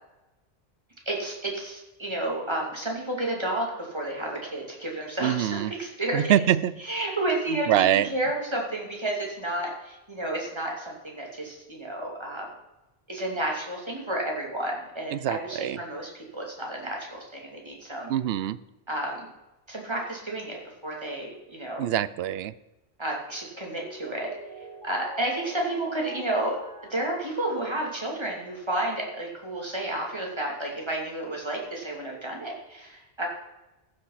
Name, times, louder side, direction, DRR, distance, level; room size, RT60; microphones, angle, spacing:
voice 1, 1.1-6.3 6.8-12.5 13.1-18.1 18.9-19.3 19.7-20.6 20.8-21.8 23.0-24.3 24.8-26.6 26.9-33.3, right 1 dB, 25° right, -1 dB, 2.9 m, -31 dB
voice 2, 5.2-5.7 6.1-6.7 7.7-8.1 15.1-15.8 18.1-18.6 21.8-22.5, right 11 dB, 75° right, 17 dB, 0.8 m, -24 dB
Mallet percussion, 23.5-28.5, left 1 dB, 45° right, 2.5 m, -46 dB
14.5 x 6.7 x 5.8 m, 1.0 s
omnidirectional pair, 1.1 m